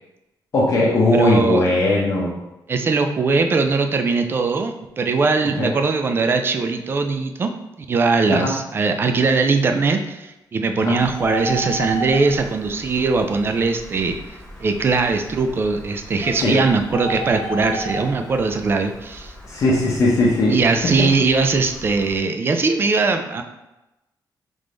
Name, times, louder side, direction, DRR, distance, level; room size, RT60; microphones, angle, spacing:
voice 1, 0.5-2.4 5.6-5.7 8.3-8.5 10.8-11.0 16.4-16.6 19.5-21.1, left 2 dB, 45° left, -5 dB, 0.7 m, -19 dB
voice 2, 1.1-1.7 2.7-7.5 7.8-19.3 20.5-23.4, right 4 dB, 30° right, 6 dB, 0.4 m, -20 dB
Bird, 11.0-22.2, equal, 15° left, 1.0 m, -34 dB
3.5 x 3.3 x 3.7 m, 0.98 s
wide cardioid pair, 175°, 8 cm